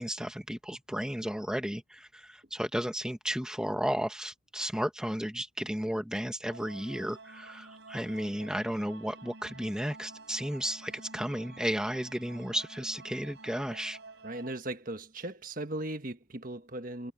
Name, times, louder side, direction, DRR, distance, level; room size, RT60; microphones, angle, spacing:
voice 1, 0.0-14.0, equal, 5° right, 1.2 m, -33 dB
sound 1, 6.4-14.5, right 3 dB, 65° right, 4.5 m, -50 dB
voice 2, 14.2-17.1, right 1 dB, 45° right, 1.5 m, -38 dB
head